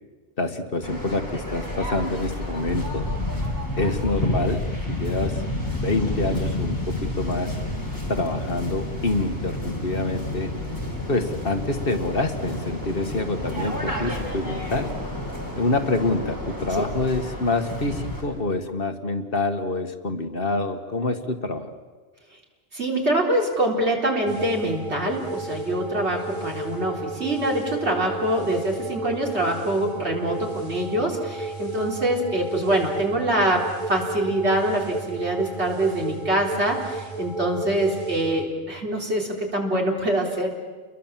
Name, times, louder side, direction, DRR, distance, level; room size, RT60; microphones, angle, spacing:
voice 1, 0.4-3.1 3.8-5.4 5.8-7.5 8.1-10.5 11.1-14.9 15.6-21.7, left 2 dB, 55° left, 6 dB, 1.8 m, -26 dB
Waves surf, 0.8-18.2, left 1 dB, 15° left, 5.5 m, -30 dB
voice 2, 22.7-40.5, right 1 dB, 75° right, 0 dB, 4.2 m, -24 dB
sound 1, 24.3-38.5, right 2 dB, 45° right, 2.5 m, -33 dB
29.5 x 22.0 x 7.4 m, 1.4 s
omnidirectional pair, 1.1 m